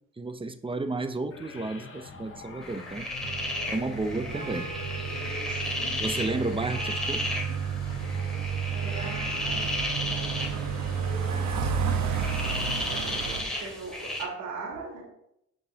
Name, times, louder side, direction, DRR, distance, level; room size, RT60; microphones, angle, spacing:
voice 1, 0.2-3.1 3.7-4.7 6.0-7.3, right 2 dB, 15° right, 9 dB, 0.8 m, -32 dB
sound 1, 1.3-11.9, left 4 dB, 45° left, 1.5 m, -44 dB
sound 2, 2.6-14.2, left 1 dB, ahead, 2.9 m, -34 dB
sound 3, 3.2-13.4, right 7 dB, 65° right, 1.3 m, -32 dB
voice 2, 5.4-5.9 8.6-9.7 10.0-10.8 12.5-15.0, right 4 dB, 85° right, -3 dB, 3.3 m, -40 dB
15.0 x 5.3 x 2.9 m, 0.79 s
cardioid pair, 90°, 30 cm